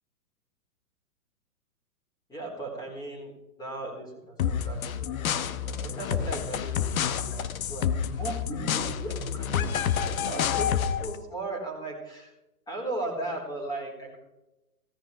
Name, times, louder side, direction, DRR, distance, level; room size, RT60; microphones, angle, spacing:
voice 1, 2.3-3.3 3.6-5.1 5.4-7.9 8.2-9.7 10.0-12.2 12.7-14.2, right 2 dB, 10° left, 0 dB, 4.3 m, -37 dB
sound 1, 4.4-11.2, left 8 dB, 60° left, 1.1 m, -29 dB
16.5 x 15.0 x 3.4 m, 0.95 s
hypercardioid pair, 150°, 47 cm